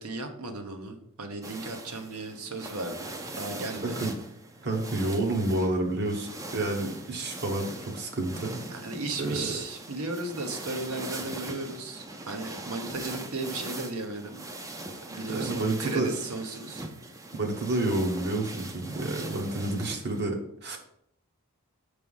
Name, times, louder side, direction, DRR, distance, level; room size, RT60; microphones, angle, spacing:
voice 1, 0.0-3.1 3.4-4.1 8.7-14.5 15.1-16.9, right 2 dB, 70° right, 5 dB, 0.9 m, -35 dB
sound 1, 1.4-20.2, right 2 dB, 15° right, 0.4 m, -41 dB
voice 2, 4.6-8.5 9.2-9.6 15.3-16.1 17.3-20.8, right 2 dB, 50° right, 2 dB, 1.0 m, -29 dB
6.0 x 3.3 x 5.4 m, 0.74 s
head